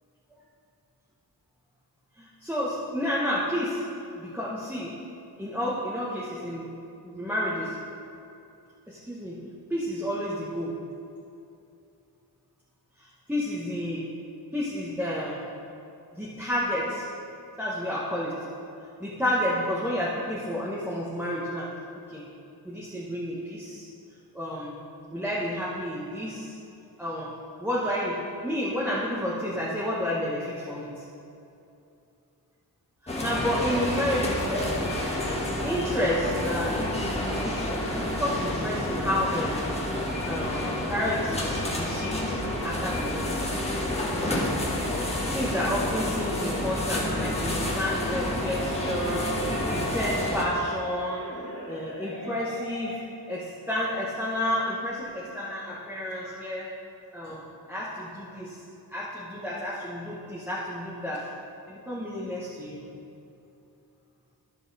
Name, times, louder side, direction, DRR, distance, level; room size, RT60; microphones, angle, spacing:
voice 1, 2.2-3.8 4.2-5.0 5.4-6.7 7.0-7.7 8.9-9.4 9.7-10.8 13.0-14.0 14.5-15.4 16.1-17.1 17.6-18.4 19.0-21.7 22.1-22.3 22.6-23.9 24.3-24.7 25.1-26.5 27.0-27.3 27.6-31.0 33.0-34.7 35.6-37.1 37.4-39.6 40.2-42.3 42.6-43.5 45.3-51.2 51.7-53.0 53.3-56.7 57.1-57.4 57.7-58.6 58.9-61.2 61.7-62.8, left 1 dB, 5° right, -7 dB, 1.2 m, -30 dB
sound 1, 33.1-50.4, left 1 dB, 15° left, 1.4 m, -29 dB
Musical instrument, 46.7-53.1, equal, 30° left, 2.3 m, -39 dB
12.5 x 5.8 x 4.1 m, 2.7 s
wide cardioid pair, 125°, 40 cm